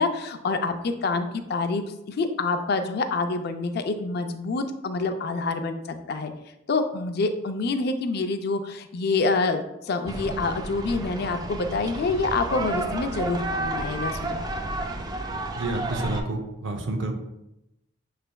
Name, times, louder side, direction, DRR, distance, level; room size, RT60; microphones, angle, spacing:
voice 1, 0.0-5.8 6.1-6.3 6.7-14.4, left 3 dB, 60° left, 8 dB, 0.4 m, -27 dB
sound 1, 10.1-16.2, right 2 dB, 20° right, 0.3 m, -31 dB
voice 2, 15.5-17.1, right 2 dB, 85° right, 4 dB, 0.6 m, -29 dB
6.9 x 3.3 x 2.2 m, 0.88 s
head